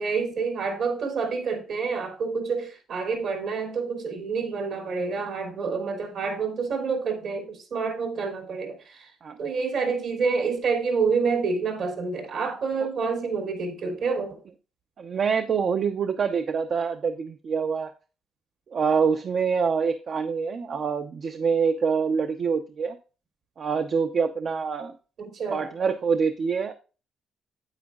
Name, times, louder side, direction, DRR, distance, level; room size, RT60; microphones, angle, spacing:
voice 1, 0.0-9.1 9.4-14.4 25.2-25.7, right 5 dB, 70° right, 3.2 m, -28 dB
voice 2, 15.0-17.9 18.7-23.0 23.6-24.9 25.5-26.7, right 6 dB, 55° right, 0.7 m, -25 dB
9.2 x 8.6 x 2.4 m
cardioid pair, 90°, 0 cm